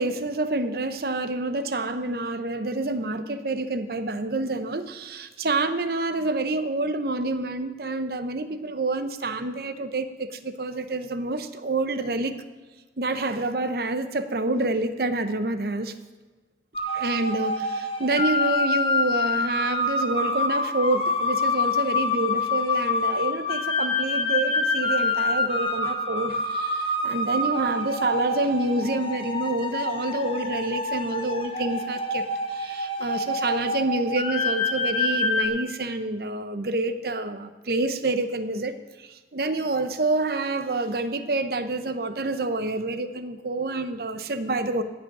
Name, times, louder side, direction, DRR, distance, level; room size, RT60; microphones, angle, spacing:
voice 1, 0.0-12.4 13.0-15.9 16.9-32.2 32.5-38.7 39.3-44.8, right 2 dB, 60° right, 10 dB, 0.8 m, -27 dB
sound 1, 16.7-35.5, left 2 dB, 30° left, 1.0 m, -26 dB
16.0 x 6.3 x 6.0 m, 1.3 s
head